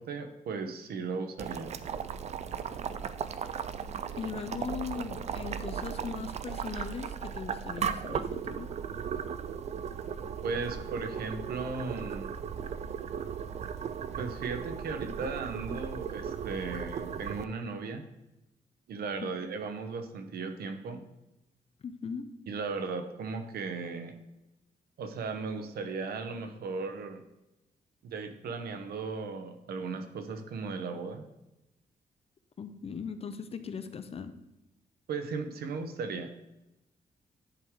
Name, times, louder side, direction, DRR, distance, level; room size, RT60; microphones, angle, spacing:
voice 1, 0.0-1.7 10.4-12.3 14.2-18.0 18.9-21.0 22.5-24.1 25.0-27.2 28.0-31.2 35.1-36.3, right 4 dB, 90° right, 7 dB, 0.9 m, -36 dB
Boiling, 1.4-17.5, right 7 dB, 45° right, 0.4 m, -37 dB
voice 2, 4.1-8.7 19.2-19.3 21.8-22.3 32.6-34.3, left 6 dB, 40° left, 10 dB, 0.6 m, -39 dB
10.5 x 3.7 x 4.7 m, 0.93 s
wide cardioid pair, 135°, 15 cm